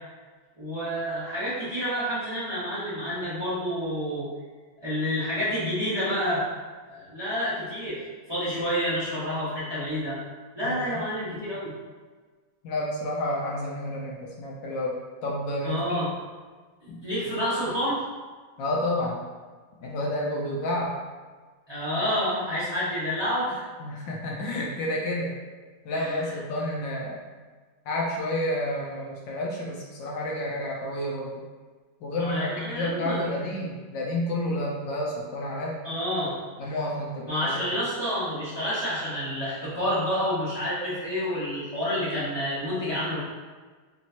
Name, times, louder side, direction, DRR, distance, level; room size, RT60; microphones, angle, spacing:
voice 1, 0.6-4.3 4.8-6.4 6.8-10.2 10.5-11.7 15.6-16.1 17.0-18.0 21.7-23.6 25.9-26.3 32.1-33.2 35.8-36.4 37.3-43.2, equal, 15° right, -11 dB, 1.0 m, -29 dB
voice 2, 10.6-11.0 12.6-16.0 16.9-17.0 18.6-19.2 19.8-20.9 23.8-25.3 25.8-27.2 27.9-31.4 32.0-35.8 36.6-37.6, left 1 dB, 70° left, -3 dB, 1.3 m, -30 dB
4.4 x 3.1 x 2.8 m, 1.4 s
omnidirectional pair, 2.2 m